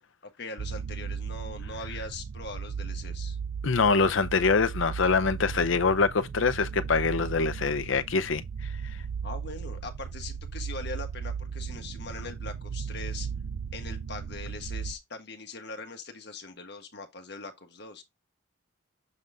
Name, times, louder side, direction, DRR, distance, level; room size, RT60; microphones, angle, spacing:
voice 1, 0.4-3.4 9.2-13.3 13.7-18.0, left 3 dB, 55° left, 1.4 m, -41 dB
sound 1, 0.6-14.9, right 6 dB, 65° right, 0.4 m, -36 dB
voice 2, 3.6-8.4, left 4 dB, 70° left, 0.6 m, -24 dB
7.2 x 3.9 x 3.5 m
head